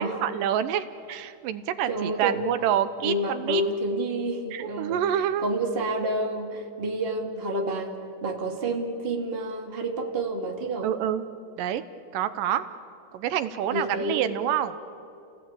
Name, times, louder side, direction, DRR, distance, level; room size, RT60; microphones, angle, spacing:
voice 1, 0.0-3.6 4.5-5.5 10.8-11.3 11.6-11.8 12.1-12.7 13.1-14.8, right 10 dB, 85° right, 12 dB, 2.6 m, -27 dB
voice 2, 1.9-2.5 3.0-5.0 5.4-7.9 8.2-10.9 13.7-14.3, right 1 dB, 20° right, 3 dB, 1.8 m, -29 dB
30.0 x 18.0 x 8.8 m, 2.5 s
omnidirectional pair, 3.8 m